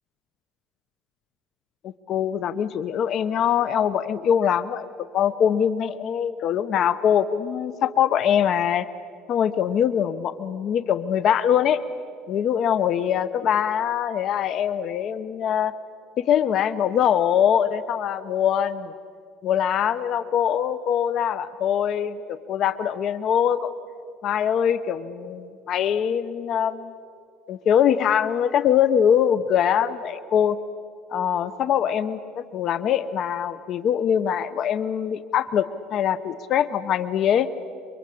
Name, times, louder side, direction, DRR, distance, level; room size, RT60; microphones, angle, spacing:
voice 1, 1.8-8.9 9.3-11.8 12.3-15.7 16.2-18.9 19.4-23.7 24.2-26.9 27.5-30.6 31.1-37.5, left 9 dB, 45° left, 14 dB, 0.8 m, -23 dB
29.0 x 24.0 x 8.5 m, 2.4 s
cardioid pair, 140°, 0 cm